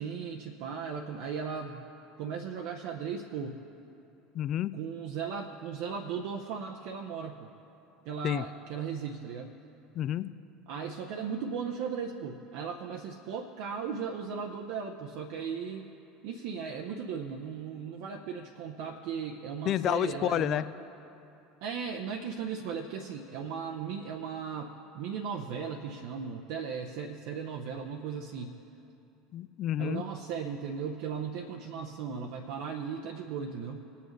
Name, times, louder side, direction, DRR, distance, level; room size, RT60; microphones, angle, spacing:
voice 1, 0.0-1.8 2.2-3.6 4.7-7.5 8.0-9.6 10.7-15.9 16.2-20.6 21.6-28.6 29.8-33.9, right 6 dB, 55° right, 2 dB, 0.6 m, -37 dB
voice 2, 4.3-4.7 8.2-8.5 10.0-10.3 19.7-20.7 29.3-30.0, left 12 dB, 45° left, 15 dB, 0.3 m, -29 dB
20.0 x 8.3 x 3.1 m, 2.9 s
figure-of-eight pair, 70°, 0 cm